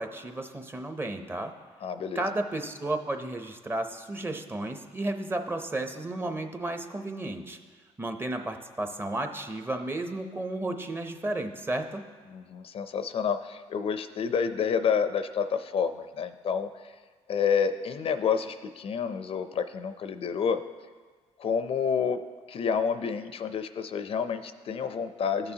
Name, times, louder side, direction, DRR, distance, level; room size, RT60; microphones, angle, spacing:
voice 1, 0.0-1.5 2.2-7.6 8.0-12.0, right 2 dB, 20° right, 6 dB, 0.7 m, -33 dB
voice 2, 1.8-2.3 12.3-16.9 17.3-20.6 21.4-22.2 22.5-25.5, left 6 dB, 55° left, 10 dB, 0.5 m, -29 dB
14.0 x 6.7 x 2.8 m, 1.5 s
cardioid pair, 100°, 12 cm